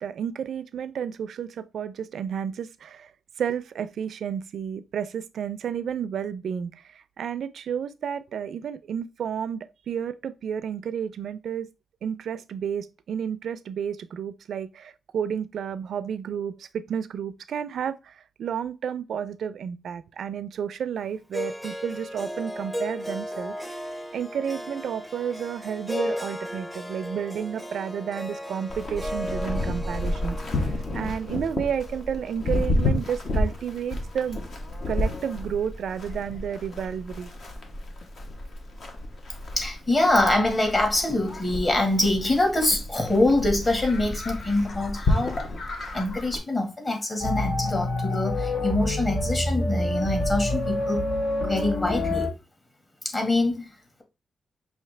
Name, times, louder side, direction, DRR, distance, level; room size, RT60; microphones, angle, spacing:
voice 1, 0.0-3.1 3.4-11.7 12.0-23.8 24.1-34.4 34.9-37.3, right 8 dB, 80° right, 0.4 m, -31 dB
Harp, 21.3-33.5, equal, 5° left, 0.6 m, -35 dB
Livestock farm animals working animals, 28.7-46.4, left 2 dB, 60° left, 1.1 m, -31 dB
voice 2, 39.5-45.3 45.9-51.0 51.5-52.3 53.0-53.7, left 2 dB, 30° left, 1.5 m, -24 dB
sound 1, 47.2-52.3, left 2 dB, 80° left, 1.6 m, -27 dB
5.7 x 2.7 x 3.2 m
cardioid pair, 105°, 0 cm